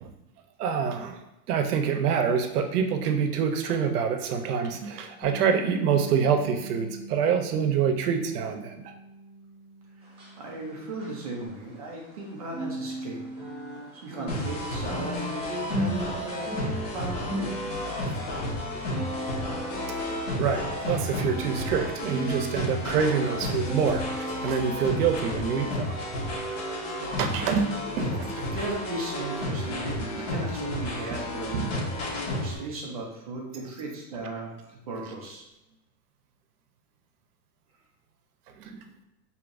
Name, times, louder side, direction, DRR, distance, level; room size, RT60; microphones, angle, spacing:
voice 1, 0.6-1.2 1.5-8.7 20.4-25.9 27.2-28.3 31.5-31.7 38.7-38.8, right 7 dB, 80° right, 6 dB, 0.8 m, -26 dB
Bass guitar, 5.2-11.5, right 2 dB, 35° left, 0.6 m, -43 dB
sound 1, 10.0-12.2 12.5-25.6 25.9-26.2 26.7-26.8, right 1 dB, 10° right, 0.7 m, -37 dB
voice 2, 10.0-13.3 13.9-16.6 16.9-17.7 28.3-35.4, right 2 dB, 30° right, -2 dB, 0.3 m, -37 dB
sound 2, 14.3-32.6, left 1 dB, 55° left, 1.3 m, -32 dB
5.9 x 2.8 x 2.5 m, 0.93 s
supercardioid pair, 170°, 45 cm